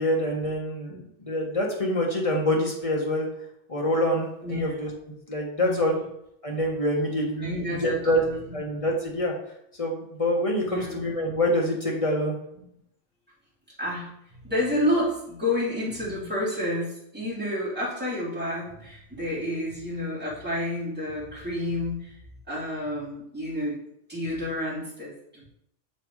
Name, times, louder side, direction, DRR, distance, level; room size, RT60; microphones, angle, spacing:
voice 1, 0.0-3.3 3.7-4.9 5.3-6.0 6.4-8.2 8.5-9.3 9.8-12.3, left 1 dB, 30° left, -2 dB, 1.5 m, -26 dB
voice 2, 4.4-4.7 5.6-6.0 7.3-8.5 10.6-11.0 13.8-14.1 14.4-22.1 22.5-23.8 24.1-25.5, left 1 dB, 10° right, -9 dB, 3.1 m, -30 dB
6.7 x 4.6 x 4.7 m, 0.75 s
omnidirectional pair, 1.3 m